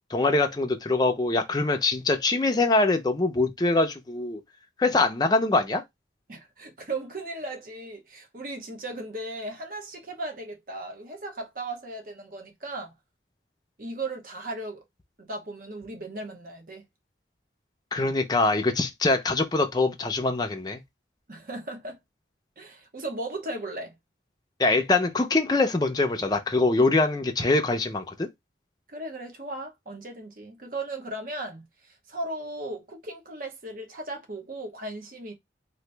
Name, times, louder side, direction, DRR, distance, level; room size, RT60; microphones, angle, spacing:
voice 1, 0.0-4.4 4.8-5.8 17.9-20.8 24.6-28.3, left 2 dB, 20° left, 0.5 m, -23 dB
voice 2, 6.3-12.9 13.8-14.8 15.2-16.8 21.3-22.0 22.6-23.9 28.9-35.3, right 2 dB, 50° right, 0.8 m, -36 dB
2.9 x 2.6 x 3.2 m
head